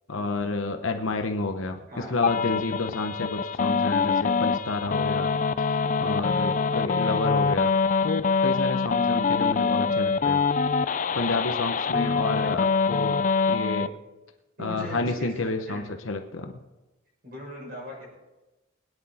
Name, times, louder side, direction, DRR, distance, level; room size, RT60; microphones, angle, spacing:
voice 1, 0.1-5.3 6.0-7.8 8.0-10.4 11.1-13.2 13.5-13.9 14.6-16.6, left 3 dB, 75° left, 5 dB, 1.0 m, -30 dB
sound 1, 2.2-13.9, left 5 dB, 35° left, 0.3 m, -24 dB
voice 2, 14.6-15.9 17.2-18.1, equal, 45° right, -2 dB, 6.6 m, -39 dB
21.0 x 10.0 x 4.3 m, 1.1 s
head